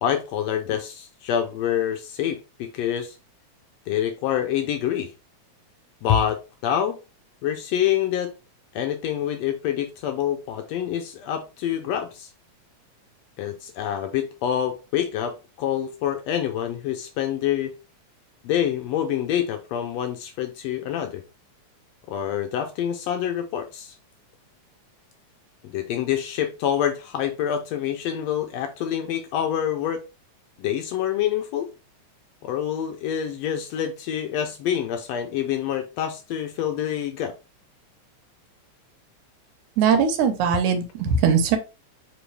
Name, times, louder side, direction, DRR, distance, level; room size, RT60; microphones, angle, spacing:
voice 1, 0.0-3.2 3.9-5.1 6.0-7.0 7.4-8.3 8.7-12.3 13.4-17.7 18.4-21.2 22.1-24.0 25.6-30.0 30.6-31.7 32.4-37.3, left 10 dB, 75° left, 1.6 m, -26 dB
voice 2, 39.8-41.6, right 6 dB, 90° right, 2.3 m, -20 dB
4.8 x 3.0 x 3.2 m
omnidirectional pair, 3.4 m